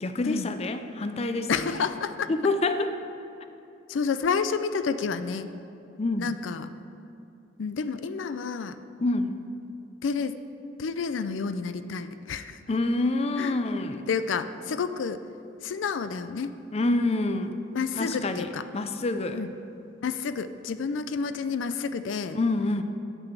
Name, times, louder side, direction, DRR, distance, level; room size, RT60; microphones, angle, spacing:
voice 1, 0.0-1.8 2.3-3.0 6.0-6.4 9.0-9.3 12.7-14.1 16.7-17.6 18.0-19.4 22.3-22.8, left 2 dB, 35° left, 9 dB, 0.5 m, -27 dB
voice 2, 1.5-2.3 3.9-5.5 6.2-6.7 7.6-8.8 10.0-10.4 10.8-12.6 13.4-13.6 14.1-15.2 15.6-16.5 17.7-18.6 19.3-19.5 20.0-22.4, left 5 dB, 90° left, 11 dB, 0.4 m, -30 dB
9.0 x 6.0 x 8.0 m, 2.8 s
head